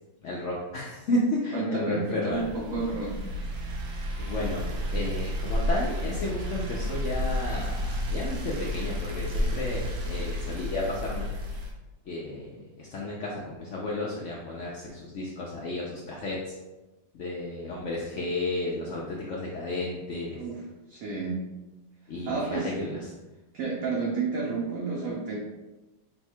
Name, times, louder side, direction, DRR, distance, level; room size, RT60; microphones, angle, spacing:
voice 1, 0.2-2.5 4.2-4.6 4.9-11.3 12.1-16.5 17.1-20.4 22.1-23.0, left 2 dB, 90° left, -4 dB, 0.6 m, -32 dB
voice 2, 1.5-3.2 20.3-21.4 22.3-23.0 23.5-25.4, right 4 dB, 65° right, -4 dB, 0.9 m, -31 dB
sound 1, 2.3-11.7, equal, 90° right, 1.5 m, -31 dB
4.0 x 2.3 x 4.3 m, 1.1 s
omnidirectional pair, 2.0 m